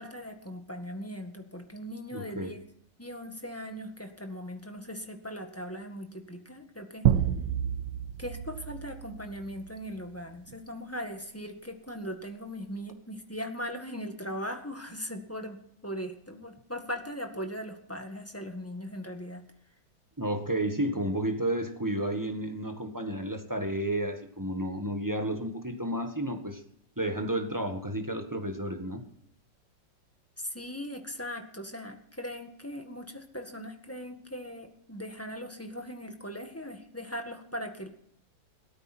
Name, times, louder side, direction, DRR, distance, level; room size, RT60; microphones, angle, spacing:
voice 1, 0.0-2.6 3.0-7.1 8.2-19.5 30.4-37.9, equal, 10° left, 4 dB, 1.6 m, -39 dB
voice 2, 2.1-2.5 20.2-26.6 27.0-29.0, right 1 dB, 10° right, 5 dB, 1.3 m, -31 dB
sound 1, 7.0-9.9, right 10 dB, 80° right, 1.4 m, -29 dB
17.0 x 13.5 x 4.4 m, 0.67 s
omnidirectional pair, 1.9 m